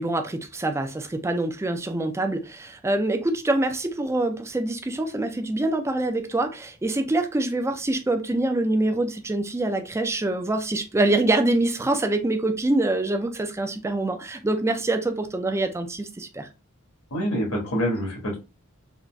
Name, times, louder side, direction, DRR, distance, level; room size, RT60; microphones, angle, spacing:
voice 1, 0.0-16.5, right 2 dB, 15° right, 6 dB, 0.3 m, -25 dB
voice 2, 17.1-18.4, equal, 80° left, -1 dB, 1.4 m, -26 dB
3.8 x 2.4 x 2.2 m, 0.30 s
head